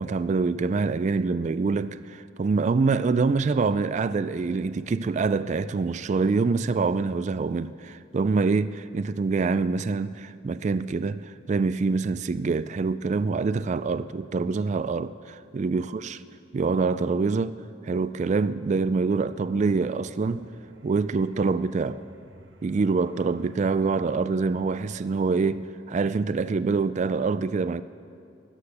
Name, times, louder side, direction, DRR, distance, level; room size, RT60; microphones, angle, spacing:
voice 1, 0.0-16.2 16.5-17.5 17.8-20.4 20.8-22.0 22.6-27.8, right 4 dB, 40° right, 0.3 m, -25 dB
sound 1, 19.2-25.0, right 2 dB, 80° right, 0.9 m, -52 dB
16.5 x 11.5 x 6.7 m
head